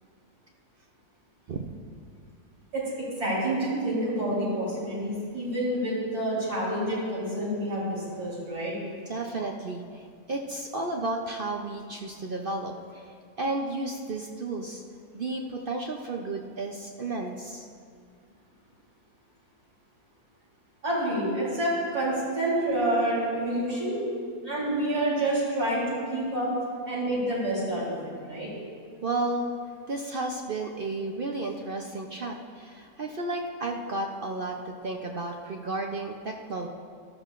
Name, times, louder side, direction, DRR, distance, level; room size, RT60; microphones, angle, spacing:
voice 1, 2.7-8.7 20.8-24.0 24.4-26.5 26.9-27.9 28.3-28.5, right 1 dB, 75° right, -8 dB, 4.3 m, -28 dB
voice 2, 9.1-10.0 10.3-14.8 15.1-17.7 29.0-29.5 29.9-36.7, right 2 dB, 50° right, 1 dB, 0.6 m, -33 dB
17.5 x 13.0 x 2.5 m, 2.2 s
omnidirectional pair, 1.6 m